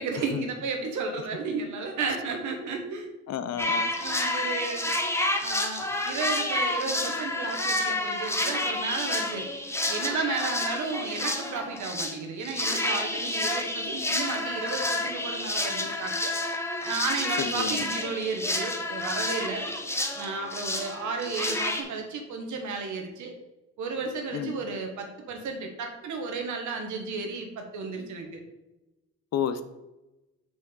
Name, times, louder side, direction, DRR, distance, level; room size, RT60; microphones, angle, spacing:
voice 1, 0.0-3.1 4.0-4.9 5.4-9.5 9.9-16.3 16.8-19.7 20.1-23.3 23.8-28.4, right 4 dB, 75° right, 4 dB, 1.4 m, -33 dB
voice 2, 3.3-3.9 17.4-17.8 24.3-24.5 29.3-29.6, left 9 dB, 60° left, 11 dB, 0.6 m, -30 dB
sound 1, 3.6-12.2 12.4-21.8, left 1 dB, 10° left, 0.9 m, -29 dB
6.3 x 5.8 x 3.8 m, 1.0 s
cardioid pair, 90°, 30 cm